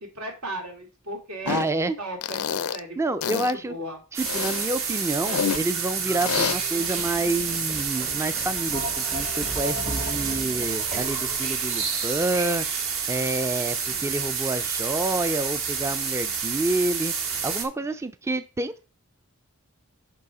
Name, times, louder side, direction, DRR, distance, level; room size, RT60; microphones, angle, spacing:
voice 1, 0.1-1.7 2.0-3.4 3.7-4.0 13.8-14.0, right 1 dB, 85° right, 2 dB, 2.5 m, -36 dB
sound 1, 1.4-1.7 2.2-2.8 3.2-3.5 4.2-5.6 6.2-6.5, left 7 dB, 75° left, 0.5 m, -28 dB
voice 2, 1.5-2.0 3.0-3.7 4.1-12.7 13.1-18.9, right 2 dB, 10° right, 12 dB, 0.3 m, -28 dB
sound 2, 4.1-17.6, right 6 dB, 65° right, 1.5 m, -29 dB
sound 3, 5.5-12.3, equal, 40° right, 1.0 m, -38 dB
6.8 x 5.4 x 4.8 m, 0.33 s
head